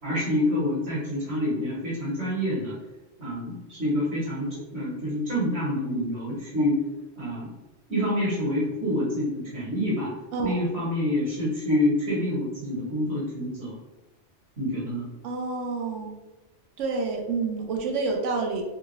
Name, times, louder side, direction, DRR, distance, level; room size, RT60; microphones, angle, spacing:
voice 1, 0.0-2.7 3.2-6.8 7.1-7.5 7.9-10.1 10.4-13.8 14.6-15.1, left 1 dB, 60° right, -7 dB, 1.5 m, -27 dB
voice 2, 15.2-16.1 16.8-18.6, right 4 dB, 85° right, 2 dB, 1.0 m, -28 dB
3.6 x 2.4 x 3.0 m, 1.1 s
omnidirectional pair, 1.2 m